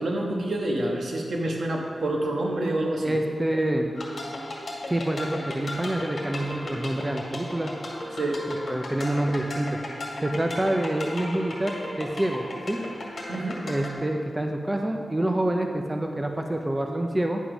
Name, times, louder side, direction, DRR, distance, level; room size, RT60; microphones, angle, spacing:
voice 1, 0.0-3.1 8.1-8.4 13.3-13.6, right 1 dB, 75° right, -1 dB, 1.4 m, -27 dB
voice 2, 3.0-3.9 4.9-7.8 8.7-9.8 10.2-12.8 13.6-17.4, right 1 dB, 15° right, 3 dB, 0.5 m, -27 dB
sound 1, 3.9-13.9, left 1 dB, 60° left, 2.0 m, -36 dB
9.9 x 5.1 x 6.1 m, 2.1 s
wide cardioid pair, 140°, 0 cm